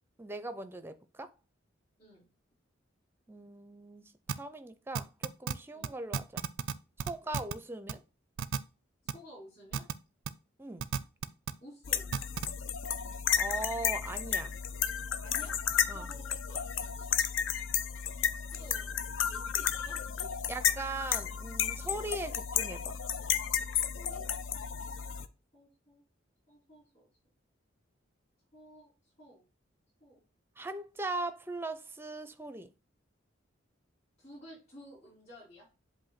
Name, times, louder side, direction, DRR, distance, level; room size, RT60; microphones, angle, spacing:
voice 1, 0.2-1.3 3.3-6.4 7.0-8.0 10.6-10.9 13.4-14.5 15.9-16.1 20.5-23.0 30.6-32.7, right 2 dB, 10° right, 0.5 m, -40 dB
sound 1, 4.3-4.4 4.9-5.5 5.8-5.9 6.1-6.7 7.0-7.5 7.9-8.0 8.4-8.6 9.1-9.2 9.7-9.9 10.2-10.3 10.8-11.5 12.1-12.5, right 6 dB, 70° right, 0.4 m, -32 dB
voice 2, 9.0-9.9 11.6-12.1 15.2-16.9 18.1-18.9 19.2-20.3 21.9-22.1 23.9-24.2 24.5-25.3 25.5-26.0 26.5-27.1 28.5-28.9 29.2-29.4 30.0-30.2 34.2-35.7, equal, 35° left, 4.4 m, -53 dB
sound 2, 11.8-25.3, left 8 dB, 75° left, 0.5 m, -33 dB
7.8 x 2.6 x 5.7 m
head